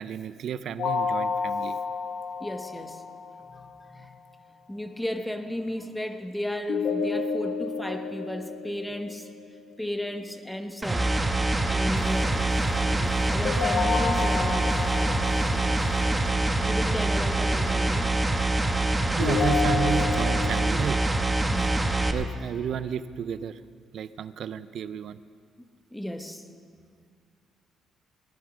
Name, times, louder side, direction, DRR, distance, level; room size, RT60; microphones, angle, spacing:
voice 1, 0.0-1.8 19.2-21.0 22.1-23.5 23.9-25.2, right 8 dB, 70° right, 14 dB, 0.5 m, -32 dB
sound 1, 0.8-3.7 6.7-9.7 13.4-16.7 19.2-20.7, left 5 dB, 75° left, 1.1 m, -30 dB
voice 2, 2.4-3.0 3.5-4.1 4.7-9.3 9.8-11.2 11.7-12.3 12.7-14.7 16.6-18.2 19.8-20.1 21.5-22.1 25.9-26.4, left 1 dB, 5° left, 6 dB, 1.1 m, -34 dB
sound 2, 10.8-22.1, right 2 dB, 20° right, 1.1 m, -25 dB
sound 3, 12.0-16.4, left 4 dB, 55° left, 1.4 m, -42 dB
18.0 x 10.0 x 6.2 m, 2.1 s
cardioid pair, 90°, 0 cm